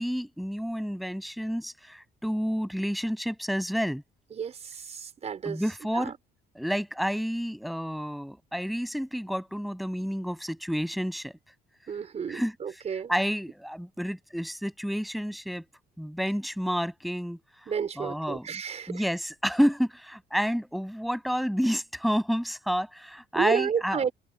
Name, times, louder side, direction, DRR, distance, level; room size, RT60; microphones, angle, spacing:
voice 1, 0.0-4.0 5.4-6.1 6.5-11.4 12.3-12.5 13.1-15.6 16.0-17.4 18.0-18.6 18.9-24.1, equal, ahead, 6.9 m, -29 dB
voice 2, 4.3-5.6 5.9-6.1 11.9-13.1 17.7-19.0 23.3-24.1, right 7 dB, 40° right, 4.8 m, -31 dB
open air
cardioid pair, 110°, 17 cm